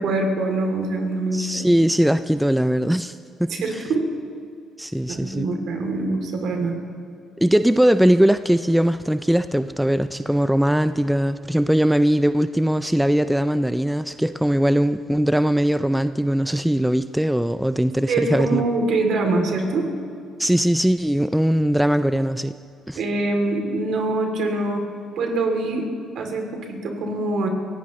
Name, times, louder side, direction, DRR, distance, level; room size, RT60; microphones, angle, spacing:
voice 1, 0.0-1.7 3.5-4.0 5.1-6.8 18.1-19.8 22.9-24.8 25.2-25.8 26.1-27.5, right 2 dB, 65° right, 2 dB, 2.9 m, -24 dB
voice 2, 1.3-3.8 4.8-5.5 7.4-18.6 20.4-22.5 22.9-23.0, equal, 5° right, 11 dB, 0.3 m, -20 dB
27.5 x 16.0 x 3.2 m, 2.3 s
cardioid pair, 115°, 0 cm